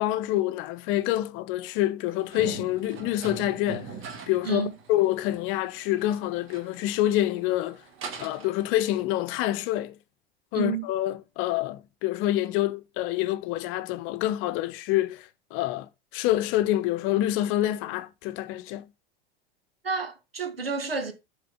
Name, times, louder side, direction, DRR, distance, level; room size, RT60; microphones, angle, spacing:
voice 1, 0.0-3.9 4.3-7.8 8.2-10.0 10.5-18.9, left 14 dB, 45° left, 0.8 m, -27 dB
sound 1, 2.1-9.0, right 5 dB, 45° right, 2.1 m, -42 dB
voice 2, 10.5-10.8 19.8-21.1, right 5 dB, 85° right, 1.6 m, -30 dB
7.7 x 4.1 x 5.5 m
figure-of-eight pair, 80°, 29 cm